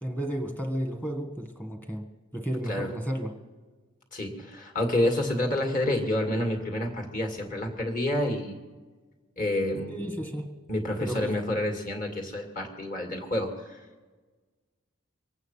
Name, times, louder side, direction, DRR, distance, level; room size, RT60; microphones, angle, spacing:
voice 1, 0.0-2.1 2.3-3.4 9.9-10.6 11.0-11.4, right 1 dB, 10° left, 4 dB, 1.5 m, -32 dB
voice 2, 4.1-8.6 9.4-10.0 10.7-13.8, left 1 dB, 35° left, 2 dB, 2.3 m, -28 dB
23.5 x 9.0 x 5.7 m, 1.3 s
head